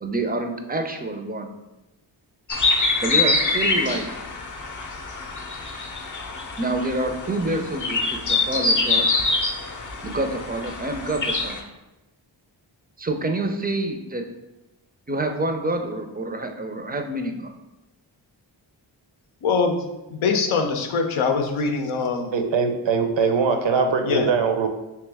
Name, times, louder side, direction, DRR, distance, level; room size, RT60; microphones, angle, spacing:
voice 1, 0.0-1.5 3.0-4.1 6.6-9.1 10.0-11.6 13.0-14.2 15.1-17.5, right 2 dB, 20° right, 5 dB, 0.4 m, -27 dB
sound 1, 2.5-11.6, left 3 dB, 40° left, 0.6 m, -25 dB
voice 2, 19.4-19.8 20.1-22.3 24.0-24.3, left 4 dB, 80° left, 5 dB, 0.6 m, -23 dB
voice 3, 22.3-24.7, right 5 dB, 65° right, 5 dB, 0.6 m, -21 dB
3.2 x 2.8 x 3.4 m, 0.99 s
cardioid pair, 40°, 48 cm